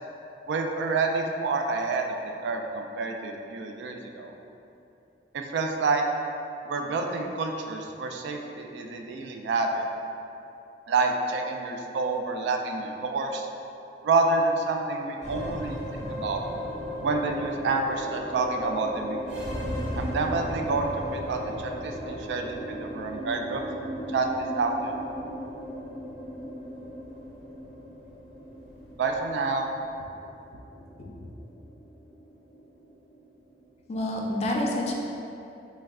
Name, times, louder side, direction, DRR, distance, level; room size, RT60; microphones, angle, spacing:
voice 1, 0.5-2.1 2.4-4.3 5.3-6.1 6.7-9.8 10.9-13.5 14.0-15.8 16.1-16.4 17.0-19.4 20.0-23.6 24.1-24.9 29.0-29.7, right 3 dB, 80° right, 4 dB, 0.3 m, -28 dB
sound 1, 15.2-33.7, equal, 40° right, 0.9 m, -36 dB
voice 2, 33.9-34.9, left 1 dB, 35° left, -1 dB, 0.3 m, -28 dB
3.1 x 2.2 x 3.5 m, 2.8 s
head